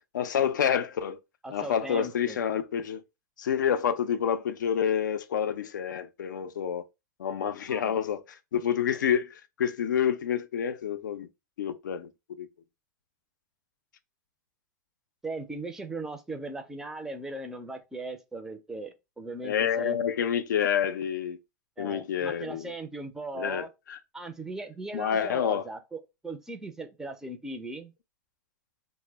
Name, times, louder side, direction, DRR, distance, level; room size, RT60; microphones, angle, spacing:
voice 1, 0.1-1.2 1.5-3.0 3.4-6.8 7.2-11.3 11.6-12.1 12.4-12.5 19.4-21.4 21.8-22.7 23.3-24.0 24.9-25.7, left 8 dB, 90° left, 0.4 m, -28 dB
voice 2, 1.4-2.4 7.7-8.0 15.2-20.0 21.8-23.7 24.1-27.9, right 2 dB, 5° right, 0.4 m, -38 dB
2.1 x 2.0 x 3.3 m
hypercardioid pair, 125°, 10 cm